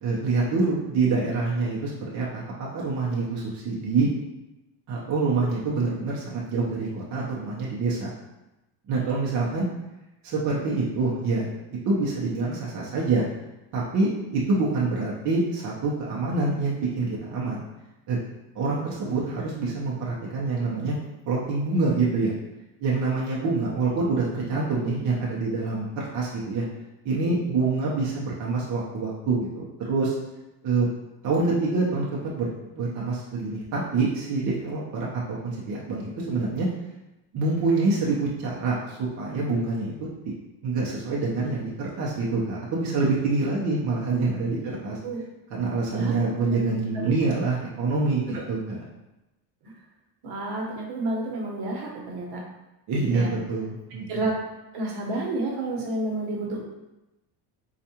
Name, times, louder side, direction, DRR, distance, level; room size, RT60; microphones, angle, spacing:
voice 1, 0.0-4.1 4.9-8.1 8.9-9.7 10.2-13.3 13.7-17.6 18.1-18.2 18.5-20.9 21.3-22.3 22.8-26.6 27.0-30.2 30.6-30.9 31.2-36.7 37.3-39.9 40.6-44.6 44.8-45.0 45.5-48.8 52.9-54.2, right 3 dB, 40° right, -5 dB, 0.7 m, -26 dB
voice 2, 50.2-52.4 52.9-53.3 54.1-54.3 54.7-56.6, right 2 dB, 60° right, -2 dB, 1.0 m, -30 dB
4.4 x 2.4 x 2.8 m, 0.97 s
cardioid pair, 150°, 43 cm